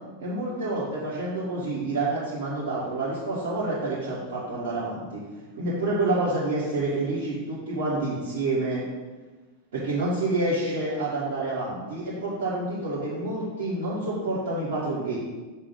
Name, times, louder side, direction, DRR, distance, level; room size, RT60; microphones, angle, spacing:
voice 1, 0.2-5.2 5.5-8.8 9.7-15.2, right 2 dB, 60° right, -10 dB, 1.8 m, -28 dB
5.8 x 3.3 x 5.2 m, 1.3 s
figure-of-eight pair, 90°, 0 cm